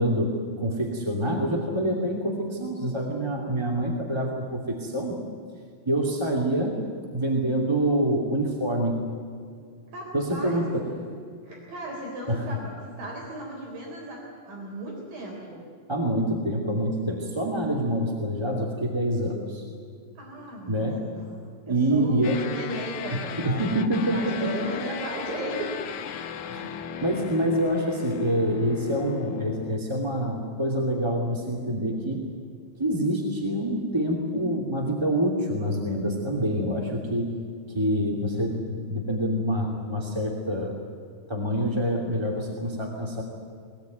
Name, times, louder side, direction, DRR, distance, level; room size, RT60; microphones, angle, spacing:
voice 1, 0.0-5.2 5.8-6.8 7.1-8.9 10.1-10.8 12.3-12.4 15.9-19.6 20.7-21.0 21.7-22.4 23.1-24.5 26.5-32.2 32.8-37.3 37.7-40.7 41.3-43.2, right 1 dB, 10° right, -1 dB, 1.7 m, -26 dB
voice 2, 9.9-10.7 11.4-15.6 20.2-21.4 21.7-23.8 24.1-25.8, right 1 dB, 60° right, -2 dB, 5.4 m, -36 dB
sound 1, 22.2-29.8, left 8 dB, 65° left, 2.1 m, -36 dB
23.0 x 19.5 x 9.3 m, 2.2 s
omnidirectional pair, 4.5 m